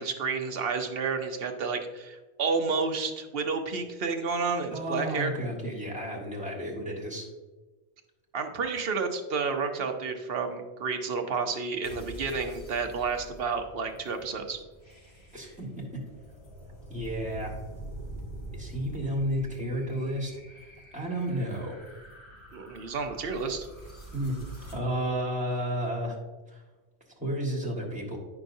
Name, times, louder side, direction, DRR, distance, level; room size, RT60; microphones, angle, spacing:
voice 1, 0.0-5.3 8.3-14.6 22.5-23.7, right 4 dB, 60° right, 5 dB, 1.0 m, -30 dB
voice 2, 4.7-7.3 15.3-16.0 16.9-17.5 18.5-20.3 20.9-21.8 24.1-24.4 24.7-26.2 26.5-26.6 27.2-28.2, right 1 dB, 5° right, -3 dB, 1.6 m, -32 dB
sound 1, 11.8-24.7, right 1 dB, 25° left, 1.9 m, -45 dB
9.7 x 5.9 x 2.6 m, 1.2 s
omnidirectional pair, 1.1 m